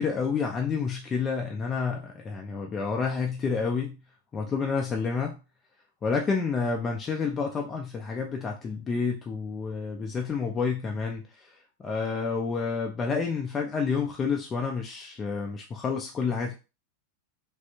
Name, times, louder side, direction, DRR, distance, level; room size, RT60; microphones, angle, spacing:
voice 1, 0.0-3.9 4.3-5.4 6.0-11.5 11.8-16.5, left 5 dB, 20° left, 1 dB, 0.4 m, -29 dB
3.3 x 2.5 x 2.7 m, 0.30 s
figure-of-eight pair, 90°, 0 cm